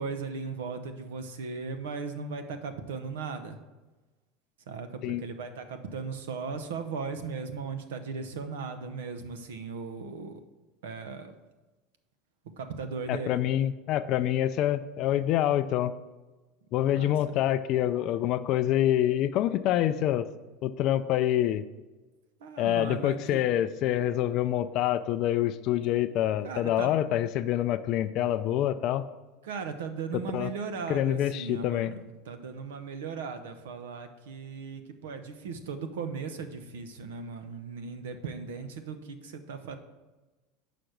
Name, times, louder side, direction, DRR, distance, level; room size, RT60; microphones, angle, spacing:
voice 1, 0.0-3.6 4.7-10.4 10.8-11.3 12.6-13.4 16.9-17.2 22.4-23.4 26.4-26.9 29.4-32.0 32.3-39.8, right 5 dB, 90° right, 9 dB, 0.8 m, -37 dB
voice 2, 13.1-15.9 16.7-20.3 20.6-21.6 22.6-29.0 30.3-30.5 30.9-31.9, left 12 dB, 55° left, 11 dB, 0.4 m, -26 dB
5.8 x 5.0 x 6.6 m, 1.2 s
supercardioid pair, 115°, 0 cm